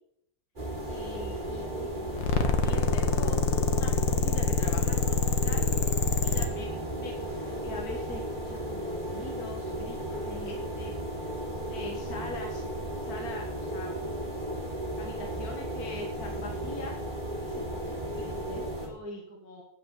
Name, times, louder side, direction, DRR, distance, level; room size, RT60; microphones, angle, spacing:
sound 1, 0.6-18.9, right 1 dB, 25° right, 3.2 m, -35 dB
voice 1, 0.9-2.1 2.4-5.6 6.2-10.9 11.7-12.6 13.1-14.5 15.0-16.9 17.4-19.6, left 2 dB, 50° left, 0 dB, 2.2 m, -43 dB
sound 2, 2.2-6.5, left 5 dB, 75° left, 1.9 m, -25 dB
9.5 x 7.7 x 8.3 m, 0.76 s
omnidirectional pair, 2.1 m